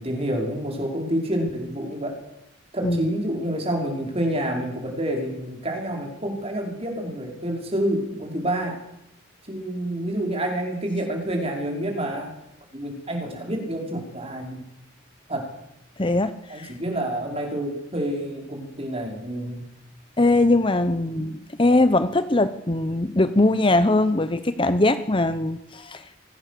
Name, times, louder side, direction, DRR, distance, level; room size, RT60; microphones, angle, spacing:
voice 1, 0.0-2.2 2.7-8.8 9.5-12.3 12.7-14.6 15.3-15.5 16.5-19.6 21.1-21.4, right 1 dB, 30° right, 1 dB, 5.3 m, -28 dB
voice 2, 16.0-16.7 20.2-26.2, left 2 dB, 25° left, 11 dB, 0.8 m, -21 dB
26.0 x 17.5 x 6.8 m, 0.83 s
head